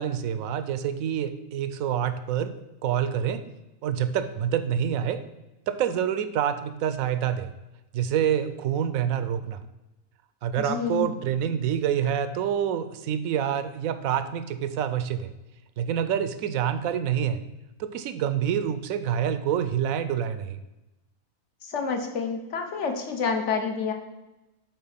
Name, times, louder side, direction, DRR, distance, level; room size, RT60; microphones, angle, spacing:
voice 1, 0.0-2.5 2.8-3.4 3.8-5.2 5.7-7.5 7.9-9.6 10.4-15.3 15.8-17.4 17.8-20.6, right 9 dB, 80° right, 12 dB, 1.0 m, -27 dB
voice 2, 10.6-11.1 21.6-23.9, left 5 dB, 60° left, 4 dB, 1.2 m, -28 dB
7.8 x 4.1 x 5.7 m, 1.0 s
omnidirectional pair, 1.4 m